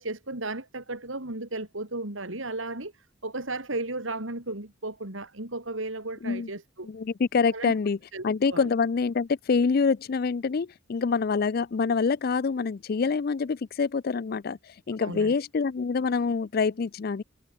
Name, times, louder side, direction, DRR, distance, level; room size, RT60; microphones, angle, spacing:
voice 1, 0.0-6.9 7.5-7.7 8.1-8.7 15.0-15.4, right 2 dB, 80° right, 4.1 m, -35 dB
voice 2, 6.8-8.0 8.2-14.6 14.9-17.2, left 5 dB, 50° left, 0.4 m, -26 dB
head